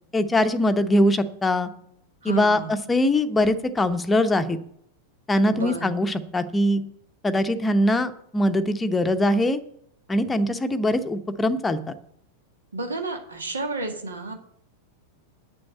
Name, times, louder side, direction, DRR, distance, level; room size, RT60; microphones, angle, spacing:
voice 1, 0.1-1.7 2.2-4.6 5.3-6.8 7.2-9.6 10.1-11.9, left 1 dB, 10° left, 9 dB, 0.9 m, -22 dB
voice 2, 2.2-2.7 5.5-6.0 12.7-14.3, right 3 dB, 75° right, 5 dB, 1.9 m, -31 dB
8.7 x 7.0 x 8.3 m, 0.71 s
figure-of-eight pair, 90°, 0 cm